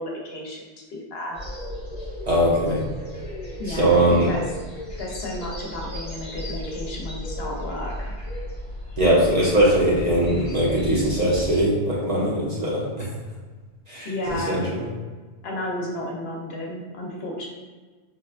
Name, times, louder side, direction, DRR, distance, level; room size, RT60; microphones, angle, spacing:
voice 1, 0.0-1.4 3.6-4.4 5.0-8.1 14.0-14.6 15.4-17.5, left 1 dB, 70° left, -1 dB, 0.9 m, -32 dB
sound 1, 1.3-11.6, left 1 dB, 35° left, 0.7 m, -35 dB
voice 2, 2.3-2.8 3.7-4.3 9.0-13.1 13.9-14.9, right 1 dB, 45° right, -5 dB, 0.7 m, -21 dB
4.1 x 2.1 x 2.4 m, 1.4 s
omnidirectional pair, 1.1 m